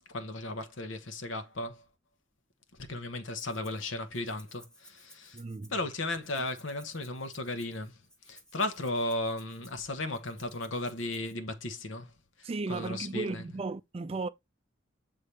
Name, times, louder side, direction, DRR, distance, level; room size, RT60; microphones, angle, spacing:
voice 1, 0.0-1.8 2.7-5.4 5.7-12.1 12.4-13.5, left 2 dB, 80° left, 1.1 m, -35 dB
Rattle (instrument), 3.3-3.8 4.1-11.3, equal, 5° left, 0.8 m, -58 dB
voice 2, 5.3-5.7 12.4-14.3, right 3 dB, 30° right, 0.4 m, -35 dB
8.3 x 3.8 x 3.2 m
head